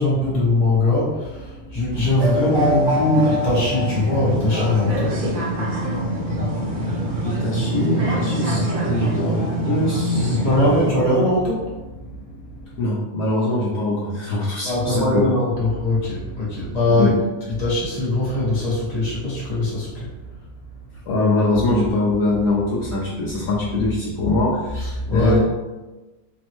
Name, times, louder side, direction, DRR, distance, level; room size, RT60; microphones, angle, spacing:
voice 1, 0.0-6.7 7.0-7.3 10.1-12.8 14.6-17.2 17.5-20.1 24.7-25.4, left 2 dB, 30° left, -7 dB, 1.0 m, -22 dB
sound 1, 1.9-10.9, right 1 dB, 70° right, 0.5 m, -24 dB
voice 2, 7.2-10.4 12.8-15.3 17.0-17.1 21.1-25.4, left 2 dB, 65° left, -7 dB, 1.0 m, -23 dB
3.5 x 2.1 x 2.9 m, 1.1 s
omnidirectional pair, 1.6 m